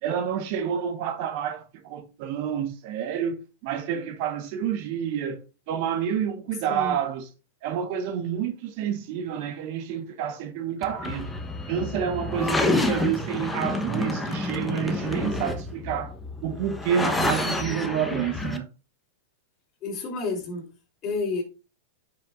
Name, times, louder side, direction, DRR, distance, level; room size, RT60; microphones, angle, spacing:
voice 1, 0.0-5.4 5.7-7.3 7.6-11.3 11.7-16.1 16.4-18.7, right 8 dB, 50° right, 1.3 m, -29 dB
sound 1, 10.8-18.6, left 2 dB, 5° left, 1.1 m, -29 dB
voice 2, 19.8-20.7 21.0-21.4, left 3 dB, 30° left, 3.6 m, -30 dB
9.8 x 5.9 x 2.6 m
supercardioid pair, 140°, 0 cm